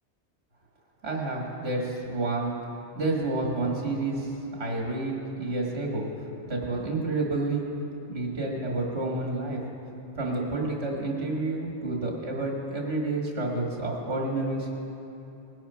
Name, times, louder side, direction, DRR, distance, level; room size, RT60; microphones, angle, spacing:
voice 1, 1.0-2.6 3.0-7.7 8.1-9.6 10.2-14.7, right 2 dB, 65° right, -1 dB, 2.0 m, -29 dB
19.5 x 9.1 x 5.6 m, 3.0 s
omnidirectional pair, 1.2 m